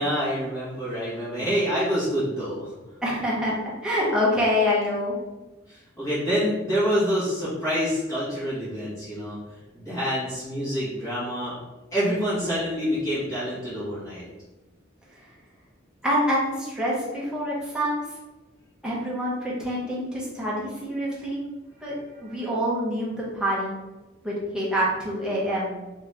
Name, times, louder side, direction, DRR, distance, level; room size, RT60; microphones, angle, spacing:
voice 1, 0.0-2.7 5.7-9.4 9.7-11.6 11.9-14.2, equal, 15° left, -11 dB, 1.3 m, -27 dB
voice 2, 3.0-3.5 3.8-5.1 16.0-18.0 18.8-21.4 21.8-23.7 24.2-25.7, equal, 5° right, -7 dB, 1.0 m, -26 dB
3.2 x 2.8 x 3.3 m, 1.1 s
head